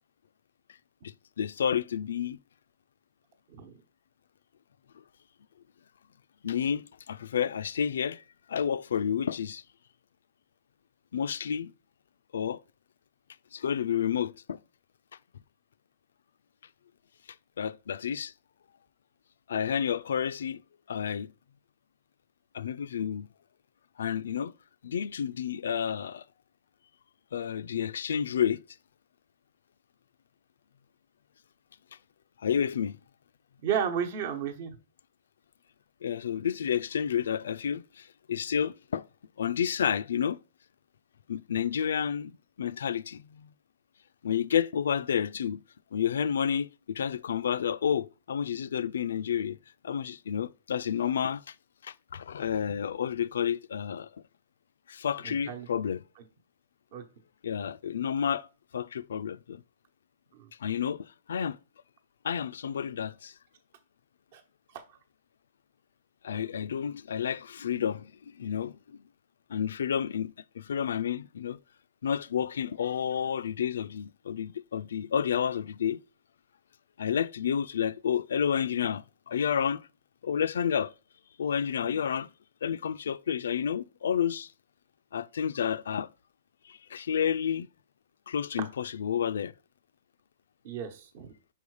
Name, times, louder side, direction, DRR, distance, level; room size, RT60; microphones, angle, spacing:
voice 1, 1.0-2.4 6.4-8.2 8.5-9.6 11.1-11.7 12.3-12.6 13.5-14.6 17.6-18.3 19.5-20.6 20.9-21.3 22.5-23.3 24.0-24.5 24.8-26.2 27.3-28.6 32.4-33.0 36.0-39.0 39.4-40.4 41.3-42.3 42.6-43.5 44.2-45.6 45.9-49.6 49.8-51.5 51.8-54.1 54.9-56.0 57.4-58.5 58.7-59.6 60.6-61.6 62.2-63.3 66.2-68.8 69.5-71.6 72.0-76.0 77.0-79.8 80.2-80.9 81.4-82.3 82.6-84.5 85.1-86.1 86.7-87.7 88.3-89.5, left 8 dB, 85° left, 0.3 m, -30 dB
voice 2, 33.6-34.7 55.5-55.7 56.9-57.0 60.4-60.5 64.3-64.4 81.8-81.9 90.6-91.3, right 8 dB, 50° right, 1.0 m, -32 dB
5.5 x 4.5 x 4.8 m
hypercardioid pair, 160°, 0 cm